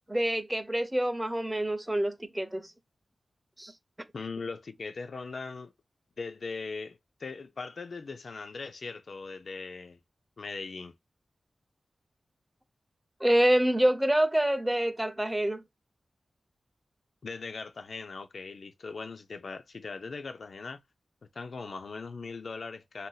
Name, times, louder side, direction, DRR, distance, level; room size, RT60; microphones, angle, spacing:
voice 1, 0.1-2.7 3.6-3.7 13.2-15.6, right 1 dB, 10° right, 0.5 m, -26 dB
voice 2, 4.1-5.7 6.2-10.0 10.4-10.9 17.2-20.8 21.3-23.1, left 4 dB, 65° left, 0.3 m, -40 dB
2.5 x 2.2 x 3.9 m
wide cardioid pair, 110°, 0 cm